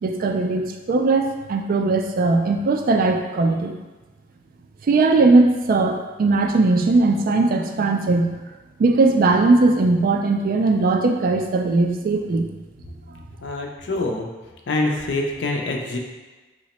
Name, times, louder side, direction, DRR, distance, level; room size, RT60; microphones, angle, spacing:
voice 1, 0.0-3.7 4.9-8.4 8.8-12.5, right 3 dB, 50° right, 5 dB, 0.3 m, -19 dB
voice 2, 13.4-14.3 14.7-16.0, left 2 dB, 70° left, 1 dB, 0.5 m, -25 dB
2.8 x 2.1 x 4.1 m, 1.2 s
head